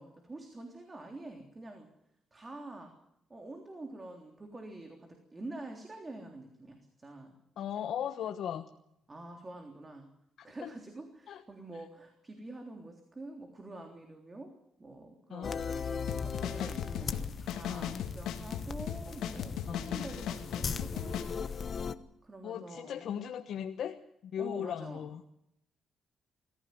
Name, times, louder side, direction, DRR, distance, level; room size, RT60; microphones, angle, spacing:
voice 1, 0.0-1.9 2.3-3.0 3.3-7.3 9.1-10.1 10.4-14.5 14.8-15.9 16.2-21.3 21.9-23.1 24.4-25.0, right 2 dB, 25° right, 3 dB, 3.5 m, -47 dB
voice 2, 7.6-8.7 10.6-10.7 11.3-11.4 15.3-15.6 17.7-18.0 19.7-20.0 22.4-24.0 24.2-25.3, left 9 dB, 70° left, 5 dB, 1.2 m, -37 dB
sound 1, 15.4-21.9, left 6 dB, 45° left, 1.1 m, -38 dB
sound 2, 16.1-21.2, left 9 dB, 90° left, 2.4 m, -37 dB
22.0 x 15.0 x 9.5 m, 0.81 s
cardioid pair, 90°, 0 cm